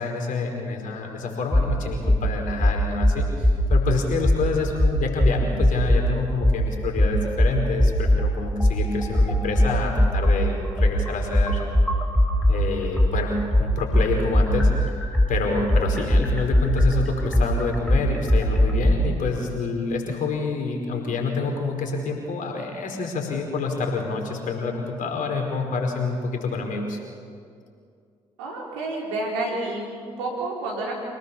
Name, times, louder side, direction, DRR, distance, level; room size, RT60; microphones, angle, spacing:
voice 1, 0.0-11.6 12.5-14.9 15.3-27.0, left 4 dB, 65° left, 2 dB, 4.7 m, -27 dB
sound 1, 1.5-1.7 2.1-2.2 2.6-3.9 4.2-4.4 4.8-6.1 6.4-6.6 7.0-8.2 8.6-12.6 13.0-19.0, left 1 dB, 5° left, 4.5 m, -19 dB
voice 2, 28.4-30.9, right 2 dB, 90° right, -2 dB, 4.4 m, -29 dB
26.5 x 18.5 x 7.1 m, 2.3 s
hypercardioid pair, 45°, 15 cm